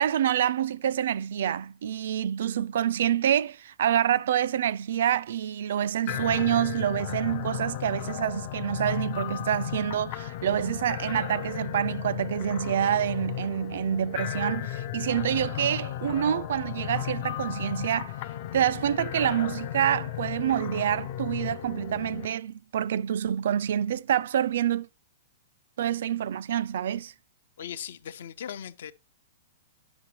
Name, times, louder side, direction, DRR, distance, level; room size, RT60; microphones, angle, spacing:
voice 1, 0.0-18.2 18.5-24.9 25.8-27.1, right 10 dB, 60° right, 0.3 m, -27 dB
sound 1, 6.1-22.3, left 12 dB, 35° left, 0.4 m, -35 dB
voice 2, 27.6-28.9, left 9 dB, 65° left, 0.7 m, -38 dB
9.6 x 6.0 x 2.9 m
hypercardioid pair, 175°, 0 cm